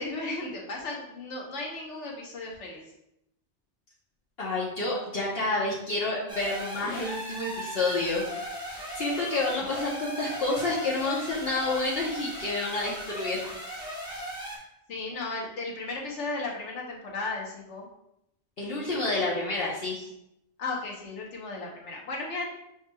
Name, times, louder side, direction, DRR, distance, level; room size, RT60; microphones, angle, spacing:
voice 1, 0.0-2.8 14.9-17.9 20.6-22.5, left 3 dB, 80° left, -2 dB, 1.3 m, -35 dB
voice 2, 4.4-8.2 8.9-13.5 18.6-20.1, left 2 dB, 60° left, -5 dB, 1.0 m, -29 dB
sound 1, 6.3-14.6, equal, 5° right, 0.9 m, -38 dB
6.9 x 3.0 x 2.3 m, 0.81 s
omnidirectional pair, 1.2 m